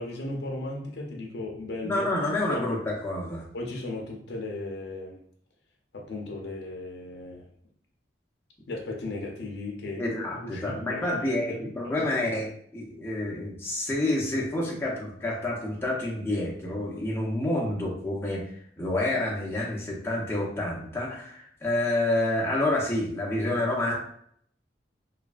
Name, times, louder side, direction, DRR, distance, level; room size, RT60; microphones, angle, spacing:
voice 1, 0.0-2.1 2.5-2.7 3.5-5.2 5.9-7.5 8.7-10.0 10.3-12.3, left 2 dB, 75° left, 0 dB, 0.5 m, -36 dB
voice 2, 1.8-3.5 10.0-12.5 12.7-18.4 18.8-24.0, left 1 dB, 15° left, -4 dB, 0.6 m, -28 dB
3.2 x 2.2 x 2.4 m, 0.66 s
head